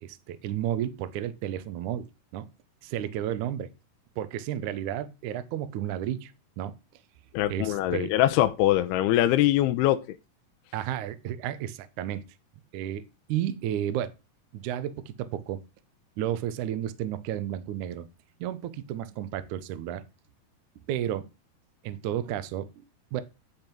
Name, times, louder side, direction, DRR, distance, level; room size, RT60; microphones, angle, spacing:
voice 1, 0.0-2.1 2.3-2.5 2.8-3.7 4.2-6.7 7.5-8.1 10.7-12.2 12.7-14.1 14.5-15.6 16.2-18.1 18.4-20.0 20.9-21.3 21.8-22.8 23.1-23.2, right 11 dB, 80° right, 1.7 m, -32 dB
voice 2, 7.3-10.0, left 14 dB, 80° left, 2.5 m, -23 dB
11.5 x 4.6 x 5.2 m
omnidirectional pair, 4.7 m